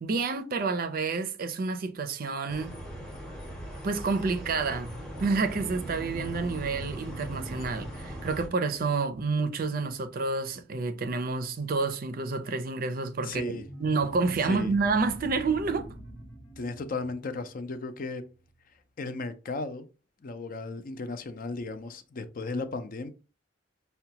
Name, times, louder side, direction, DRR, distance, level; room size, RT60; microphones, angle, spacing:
voice 1, 0.0-2.8 3.8-4.9 5.2-13.5 13.8-15.9, right 4 dB, 45° right, 0.5 m, -29 dB
sound 1, 2.5-8.5, equal, 5° left, 0.8 m, -40 dB
sound 2, 5.1-10.1 13.4-18.3, right 2 dB, 85° left, 1.1 m, -45 dB
voice 2, 13.2-13.6 14.5-14.7 16.6-18.2 19.0-19.9 20.2-23.1, left 3 dB, 45° left, 0.5 m, -35 dB
5.7 x 2.2 x 2.8 m
head